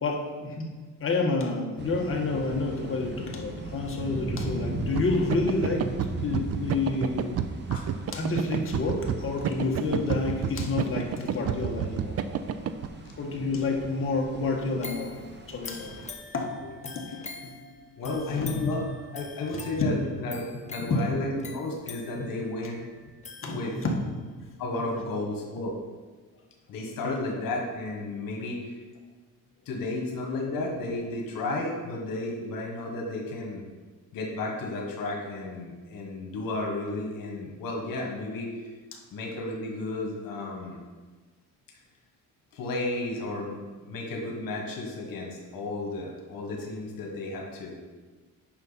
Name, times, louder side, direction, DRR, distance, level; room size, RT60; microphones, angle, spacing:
voice 1, 0.0-0.7 1.0-5.9 6.2-7.3 8.1-12.2 12.5-12.6 13.2-15.1 15.5-15.9 16.3-16.5 16.8-17.5 18.3-18.7 19.8-19.9 20.8-21.1 22.2-22.3 23.4-24.0 27.0-27.2 38.9-39.0, left 3 dB, 40° left, 0 dB, 1.5 m, -29 dB
sound 1, 1.8-16.1, right 2 dB, 30° right, 1.0 m, -39 dB
sound 2, 4.8-12.9, right 8 dB, 45° right, 0.5 m, -29 dB
sound 3, 14.8-24.1 24.5-24.6, left 4 dB, 20° left, 0.8 m, -45 dB
voice 2, 18.0-18.8 19.1-22.8 23.5-23.7 24.6-25.8 26.7-28.8 29.6-33.6 34.1-38.5 39.1-40.8 42.5-47.8, left 2 dB, 75° left, 0 dB, 1.6 m, -33 dB
9.0 x 5.9 x 4.2 m, 1.3 s
cardioid pair, 125°, 34 cm